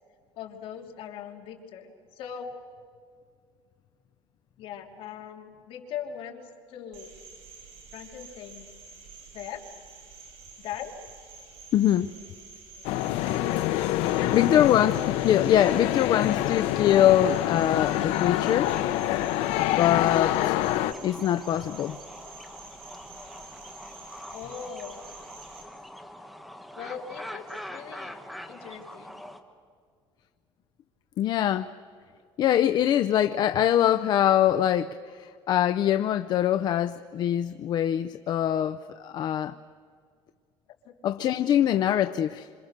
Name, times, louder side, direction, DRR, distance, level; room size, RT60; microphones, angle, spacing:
voice 1, 0.4-2.5 4.6-7.1 7.9-8.7 9.3-9.6 10.6-10.9 14.0-14.7 24.3-25.0 26.7-28.2 28.5-29.2 40.8-40.9, left 8 dB, 60° left, 2 dB, 3.0 m, -40 dB
Cricket, 6.9-25.6, right 4 dB, 65° right, 6.0 m, -49 dB
voice 2, 11.7-12.2 14.3-15.0 15.2-18.7 19.7-20.6 21.0-22.0 31.2-31.7 32.4-39.6 41.0-42.5, left 11 dB, 45° left, 10 dB, 0.6 m, -23 dB
sound 1, 12.8-20.9, left 14 dB, 85° left, 0.8 m, -26 dB
sound 2, 16.7-29.4, equal, ahead, 1.5 m, -44 dB
27.0 x 26.5 x 6.7 m, 2.1 s
cardioid pair, 155°, 10 cm